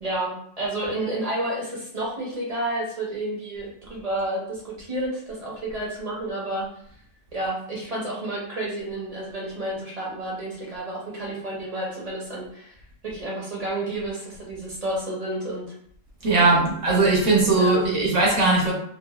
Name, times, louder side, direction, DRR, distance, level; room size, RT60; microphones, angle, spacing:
voice 1, 0.0-6.7 7.3-12.7 13.0-15.7 16.4-16.7 17.5-17.9, right 1 dB, 35° right, -4 dB, 0.7 m, -30 dB
voice 2, 16.2-18.7, right 3 dB, 65° right, -3 dB, 1.1 m, -19 dB
3.0 x 2.4 x 2.3 m, 0.65 s
omnidirectional pair, 1.4 m